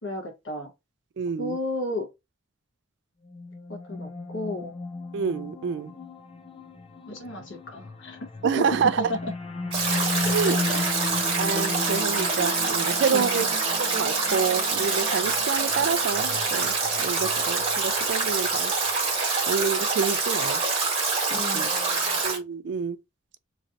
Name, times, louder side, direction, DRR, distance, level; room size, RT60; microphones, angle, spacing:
voice 1, 0.0-0.7 1.4-2.1 3.7-4.7 7.1-9.3 10.1-10.8 13.1-13.5 21.3-22.2, left 1 dB, 70° left, 1.2 m, -34 dB
voice 2, 1.2-1.6 5.1-5.9 8.4-9.1 10.3-10.6 11.4-13.5 13.9-18.7 19.5-20.6 21.5-21.7 22.2-23.0, right 6 dB, 60° right, 0.3 m, -27 dB
sound 1, 3.2-18.6, left 2 dB, 25° left, 0.4 m, -35 dB
Stream / Drip / Trickle dribble, 9.7-22.4, right 4 dB, 30° right, 1.2 m, -26 dB
3.1 x 2.6 x 2.5 m
head